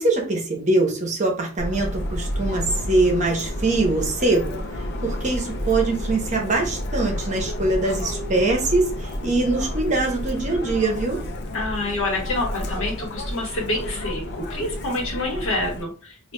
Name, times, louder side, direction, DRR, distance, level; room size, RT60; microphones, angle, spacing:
voice 1, 0.0-4.5 5.0-11.2, right 2 dB, 35° right, 1 dB, 0.8 m, -23 dB
Subway metro underground, 1.6-15.8, left 1 dB, 55° left, 0.5 m, -30 dB
voice 2, 11.5-16.3, left 2 dB, 80° left, -1 dB, 1.3 m, -27 dB
4.4 x 2.6 x 2.2 m, 0.39 s
head